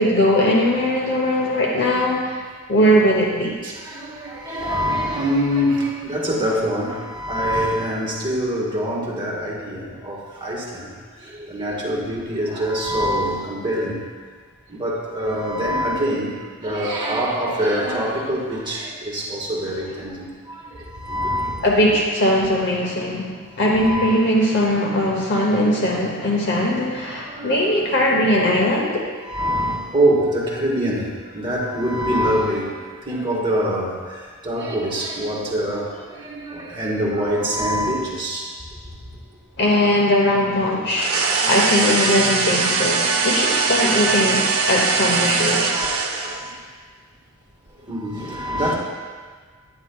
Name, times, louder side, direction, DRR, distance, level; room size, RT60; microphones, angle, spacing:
voice 1, 0.0-2.4 2.7-3.6 21.6-29.1 39.6-45.8, left 1 dB, 55° left, -1 dB, 0.9 m, -20 dB
voice 2, 3.6-14.1 14.7-21.7 23.7-24.2 27.2-27.7 29.2-38.5 40.4-40.5 45.4-45.9 46.2-46.6 47.8-48.7, equal, 25° right, -4 dB, 1.5 m, -25 dB
sound 1, 40.9-46.5, right 4 dB, 85° right, 0.8 m, -21 dB
9.7 x 9.6 x 2.3 m, 1.5 s
head